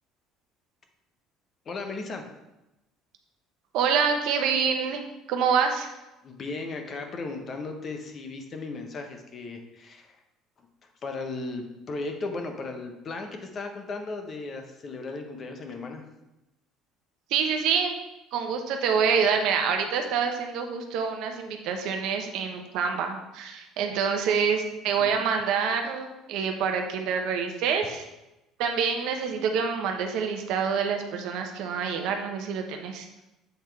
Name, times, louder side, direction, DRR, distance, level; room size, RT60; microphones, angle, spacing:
voice 1, 1.7-2.3 6.2-10.2 10.6-10.7 11.0-16.0 25.0-25.2, left 3 dB, 25° left, 4 dB, 0.7 m, -36 dB
voice 2, 3.7-5.0 5.3-5.9 17.3-17.9 18.3-28.0 28.6-33.1, right 6 dB, 60° right, 4 dB, 0.8 m, -26 dB
8.0 x 3.5 x 4.5 m, 0.96 s
cardioid pair, 175°, 0 cm